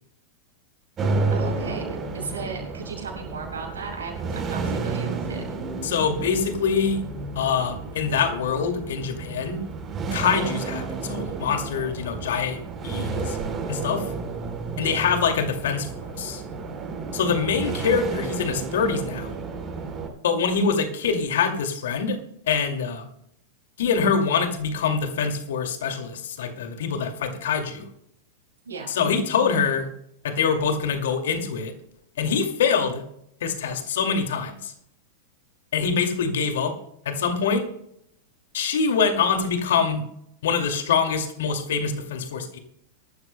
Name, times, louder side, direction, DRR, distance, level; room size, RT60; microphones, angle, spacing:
sound 1, 1.0-20.1, right 4 dB, 30° right, 3.8 m, -31 dB
voice 1, 1.3-1.8 2.1-5.4 14.8-15.1 28.6-28.9, right 5 dB, 75° right, -2 dB, 6.8 m, -36 dB
voice 2, 5.8-7.0 7.4-9.6 10.1-13.4 13.7-14.0 14.8-15.9 16.2-16.4 17.1-19.3 20.2-22.2 22.5-23.0 23.8-27.9 28.9-29.9 30.2-31.7 32.2-33.0 33.4-34.7 35.7-36.7 37.1-37.6 38.5-40.0 40.4-42.6, left 6 dB, 65° left, 5 dB, 2.3 m, -24 dB
23.5 x 13.0 x 2.2 m, 0.75 s
figure-of-eight pair, 95°, 0 cm